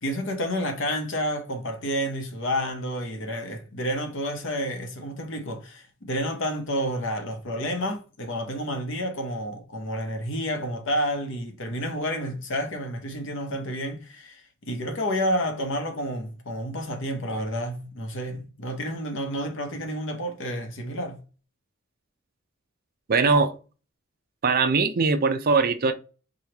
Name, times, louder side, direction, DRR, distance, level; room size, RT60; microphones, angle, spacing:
voice 1, 0.0-21.2, equal, 65° left, 0.9 m, -30 dB
voice 2, 23.1-23.6 24.4-25.9, right 4 dB, 45° right, 0.5 m, -21 dB
4.9 x 2.3 x 2.9 m
head